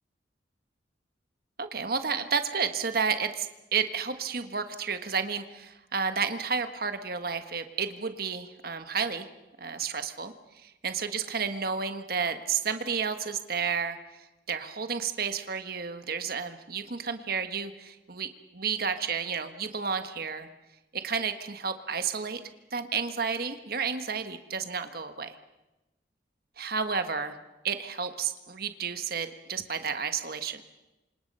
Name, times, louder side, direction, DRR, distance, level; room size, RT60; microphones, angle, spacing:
voice 1, 1.6-9.3 9.6-10.3 10.6-14.0 14.5-20.5 20.9-22.4 22.7-25.4 26.6-27.4 27.6-30.6, right 6 dB, 55° right, 8 dB, 1.5 m, -31 dB
29.0 x 26.0 x 5.5 m, 1.0 s
head